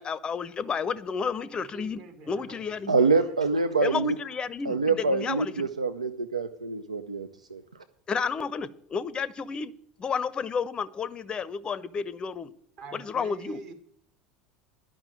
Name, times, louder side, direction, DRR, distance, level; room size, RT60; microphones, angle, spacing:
voice 1, 0.0-2.0 2.3-3.0 3.8-5.7 8.1-9.7 10.0-12.5 12.9-13.6, left 6 dB, 25° left, 19 dB, 0.6 m, -31 dB
voice 2, 1.7-3.3 12.8-13.7, right 4 dB, 50° right, 5 dB, 1.9 m, -46 dB
voice 3, 2.9-4.1 4.7-7.6, right 4 dB, 85° right, 9 dB, 0.5 m, -25 dB
11.0 x 6.0 x 9.0 m, 0.65 s
figure-of-eight pair, 70°, 3 cm